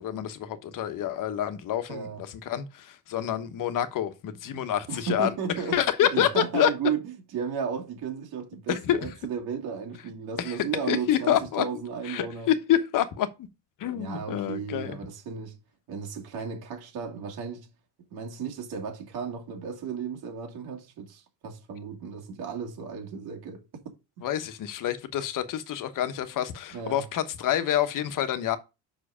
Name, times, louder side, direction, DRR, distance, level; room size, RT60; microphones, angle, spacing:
voice 1, 0.0-5.3 5.7-6.7 8.7-9.1 10.4-11.6 12.0-13.5 13.8-15.0 24.2-28.6, left 11 dB, 50° left, 1.2 m, -27 dB
voice 2, 1.9-2.2 4.9-5.8 6.1-12.5 14.0-15.6 15.9-17.7 18.1-23.6 24.2-24.3 26.7-27.0, right 6 dB, 60° right, 2.6 m, -34 dB
6.3 x 4.9 x 5.0 m
supercardioid pair, 100°, 41 cm